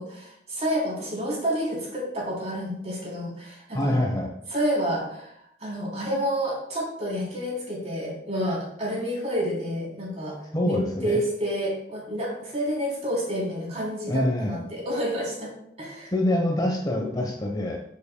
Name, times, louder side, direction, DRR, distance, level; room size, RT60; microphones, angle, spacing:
voice 1, 0.0-4.0 4.5-15.5 15.8-16.1, equal, 35° right, -4 dB, 3.6 m, -29 dB
voice 2, 3.7-4.3 10.5-11.2 14.1-14.6 16.1-17.8, left 1 dB, 20° left, 1 dB, 1.0 m, -25 dB
12.0 x 7.4 x 2.3 m, 0.74 s
head